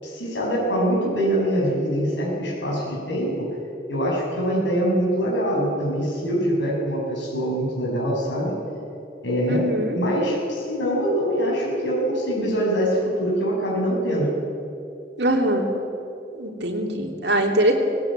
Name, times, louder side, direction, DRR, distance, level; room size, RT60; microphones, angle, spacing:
voice 1, 0.0-3.5 3.9-8.5 9.2-9.7 9.9-14.3, equal, 75° left, -4 dB, 7.2 m, -24 dB
voice 2, 9.5-10.0 15.2-15.7 16.3-17.7, right 1 dB, 60° right, 0 dB, 3.2 m, -22 dB
19.0 x 18.0 x 9.0 m, 2.7 s
head